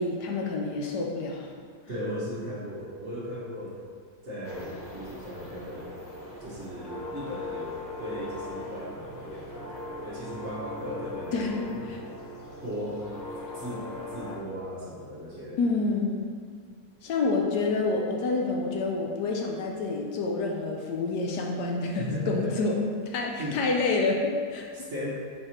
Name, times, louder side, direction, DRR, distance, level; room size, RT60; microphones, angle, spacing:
voice 1, 0.0-1.5 11.3-11.6 11.9-12.0 15.6-16.3 17.0-22.8 23.1-24.9, left 3 dB, 75° left, 0 dB, 1.3 m, -28 dB
voice 2, 1.9-3.8 4.2-5.9 6.4-11.7 12.6-13.1 13.5-13.8 14.1-15.6 22.0-22.5 23.4-23.6 24.7-25.1, equal, 45° right, -7 dB, 1.5 m, -37 dB
sound 1, 4.4-14.4, left 2 dB, 20° left, 0.5 m, -40 dB
4.8 x 4.7 x 4.3 m, 2.1 s
omnidirectional pair, 1.8 m